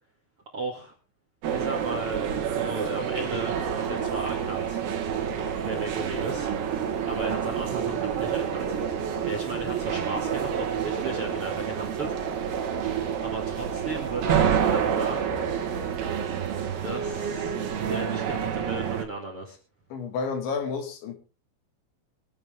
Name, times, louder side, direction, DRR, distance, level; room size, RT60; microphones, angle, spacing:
voice 1, 0.5-0.9 1.5-4.8 5.6-6.5 7.0-8.8 9.2-12.4 13.2-15.5 16.8-19.6, right 3 dB, 40° right, 2 dB, 2.2 m, -35 dB
sound 1, 1.4-19.0, right 8 dB, 60° right, 3.4 m, -28 dB
voice 2, 19.9-21.2, left 5 dB, 70° left, 6 dB, 4.5 m, -30 dB
24.5 x 9.0 x 3.7 m, 0.33 s
omnidirectional pair, 5.6 m